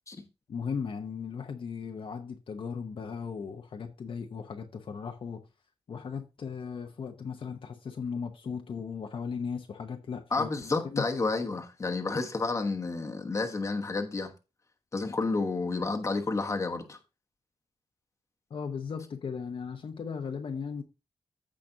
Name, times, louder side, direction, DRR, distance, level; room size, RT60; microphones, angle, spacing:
voice 1, 0.5-5.4 5.9-10.5 10.8-11.0 18.5-20.8, left 6 dB, 55° left, 0.9 m, -37 dB
voice 2, 10.3-14.3 14.9-17.0, left 3 dB, 30° left, 1.2 m, -30 dB
15.0 x 5.1 x 2.7 m
wide cardioid pair, 170°, 11 cm